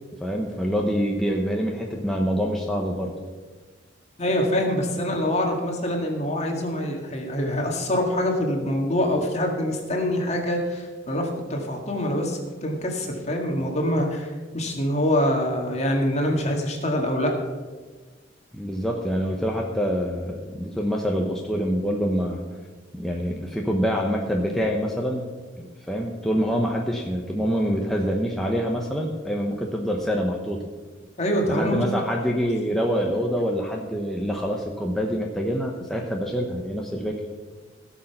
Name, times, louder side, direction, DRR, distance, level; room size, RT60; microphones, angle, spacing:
voice 1, 0.2-3.1 18.5-22.4 22.9-25.3 25.6-30.7 31.5-37.2, equal, ahead, -1 dB, 0.9 m, -26 dB
voice 2, 4.2-17.3 31.2-31.8, left 1 dB, 35° left, 1 dB, 2.0 m, -25 dB
17.0 x 6.6 x 5.8 m, 1.4 s
head